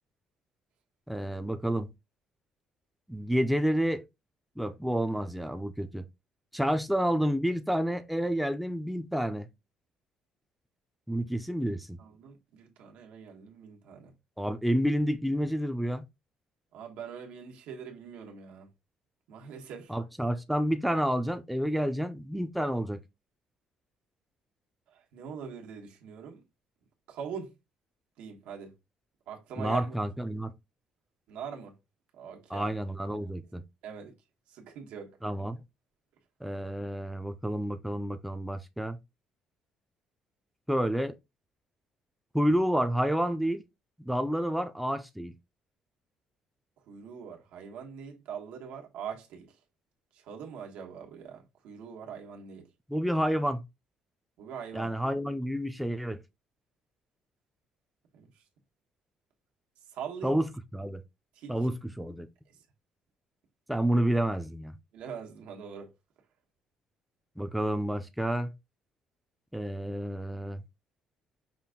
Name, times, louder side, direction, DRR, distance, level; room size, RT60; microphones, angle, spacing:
voice 1, 1.1-1.9 3.1-4.0 4.6-6.0 6.5-9.5 11.1-12.0 14.4-16.0 19.9-23.0 29.6-30.5 32.5-33.6 35.2-35.6 36.4-39.0 40.7-41.1 42.3-43.6 44.0-45.3 52.9-53.6 54.7-56.2 60.2-61.0 61.5-62.3 63.7-64.7 67.4-68.5 69.5-70.6, equal, ahead, 0.4 m, -29 dB
voice 2, 12.0-14.1 16.7-18.7 19.3-19.9 24.9-26.4 27.1-27.5 28.2-28.7 29.3-29.9 31.3-31.7 32.2-32.7 33.8-34.1 34.5-35.1 46.9-49.5 50.3-52.7 54.4-54.9 58.1-58.3 59.9-60.4 61.4-61.6 64.9-65.9, right 7 dB, 90° right, 1.2 m, -42 dB
5.6 x 2.5 x 3.6 m
cardioid pair, 170°, 2 cm